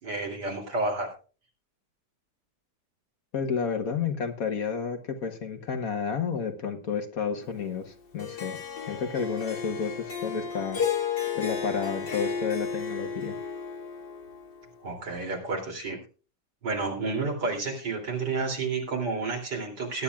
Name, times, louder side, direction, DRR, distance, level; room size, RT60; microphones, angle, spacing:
voice 1, 0.0-1.1 14.8-16.0 16.6-20.0, right 3 dB, 70° right, 0 dB, 3.5 m, -30 dB
voice 2, 3.3-8.6 8.9-10.8 11.3-13.4, left 6 dB, 55° left, 6 dB, 1.6 m, -31 dB
Harp, 8.2-14.6, left 7 dB, 85° left, 2.6 m, -33 dB
20.0 x 10.0 x 2.3 m, 0.36 s
omnidirectional pair, 1.9 m